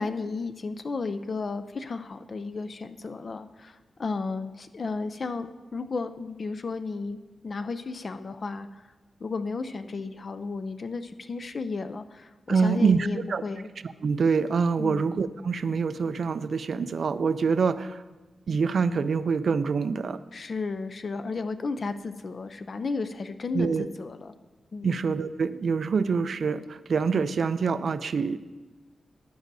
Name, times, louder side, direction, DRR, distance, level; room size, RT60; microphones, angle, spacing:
voice 1, 0.0-7.2 7.4-8.9 9.2-13.7 14.8-15.1 20.3-24.4 24.7-24.9, left 4 dB, 40° left, 10 dB, 0.4 m, -33 dB
voice 2, 12.5-13.4 13.8-18.0 18.5-20.2 23.5-23.9 24.8-28.4, right 5 dB, 55° right, 13 dB, 0.4 m, -25 dB
14.0 x 10.0 x 2.7 m, 1.2 s
wide cardioid pair, 160°, 0 cm